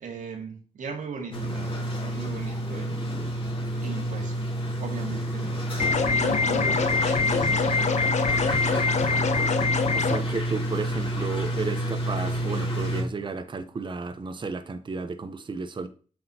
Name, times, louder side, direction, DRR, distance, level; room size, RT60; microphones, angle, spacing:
voice 1, 0.0-3.1 3.8-4.4 4.7-9.0, right 5 dB, 85° right, 2.1 m, -38 dB
sound 1, 1.3-13.0, right 1 dB, 45° left, 2.7 m, -29 dB
sound 2, 5.8-10.2, left 5 dB, 65° left, 0.8 m, -24 dB
voice 2, 9.9-15.9, right 4 dB, 40° right, 0.8 m, -33 dB
7.8 x 6.3 x 2.8 m
cardioid pair, 85°, 13 cm